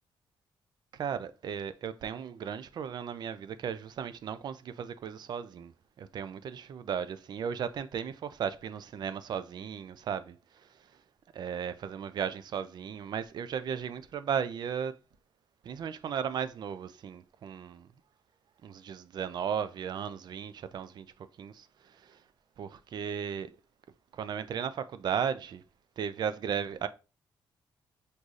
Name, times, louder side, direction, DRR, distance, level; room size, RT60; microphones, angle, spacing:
voice 1, 1.0-5.7 6.0-10.4 11.3-14.9 15.6-17.9 18.6-21.1 21.4-21.7 22.6-23.5 24.1-25.6 26.0-26.9, right 7 dB, 55° right, 0.4 m, -35 dB
6.2 x 2.7 x 2.4 m
cardioid pair, 140°, 9 cm